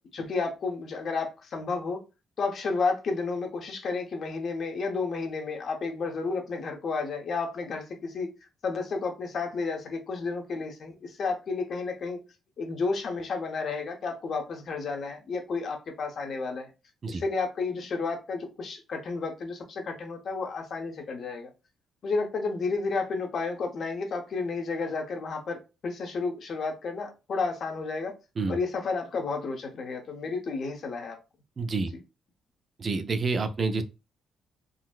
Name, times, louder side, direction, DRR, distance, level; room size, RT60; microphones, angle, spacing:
voice 1, 0.1-2.0 2.4-8.3 8.6-12.2 12.6-16.7 17.1-21.5 22.0-28.1 28.5-31.2, left 4 dB, 55° left, 0.8 m, -31 dB
voice 2, 31.6-31.9 32.8-33.8, right 4 dB, 40° right, 0.4 m, -28 dB
3.8 x 2.1 x 2.4 m
cardioid pair, 90°, 0 cm